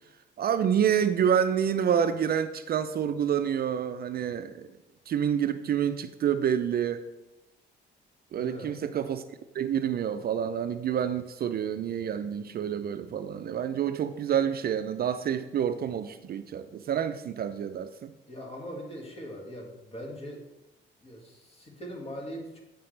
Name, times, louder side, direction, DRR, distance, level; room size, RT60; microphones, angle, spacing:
voice 1, 0.4-4.7 5.1-7.0 8.3-9.2 9.5-18.1, right 8 dB, 50° right, 11 dB, 0.4 m, -28 dB
voice 2, 8.4-8.8 18.3-20.4 21.0-22.6, equal, 30° left, 0 dB, 1.9 m, -41 dB
8.6 x 5.9 x 3.3 m, 0.99 s
cardioid pair, 90°, 20 cm